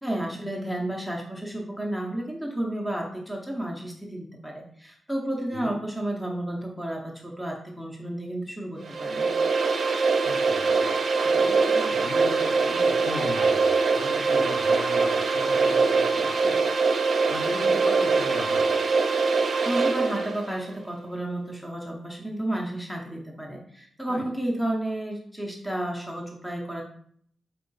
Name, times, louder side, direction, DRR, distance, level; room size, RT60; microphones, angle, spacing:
voice 1, 0.0-9.3 19.6-26.8, right 1 dB, ahead, -1 dB, 0.6 m, -32 dB
sound 1, 8.8-20.5, right 4 dB, 50° right, 0.6 m, -23 dB
voice 2, 10.2-10.8 11.2-16.6 17.3-18.7 24.1-24.3, left 2 dB, 40° left, 1 dB, 0.9 m, -37 dB
4.5 x 3.0 x 3.9 m, 0.63 s
wide cardioid pair, 135°, 0 cm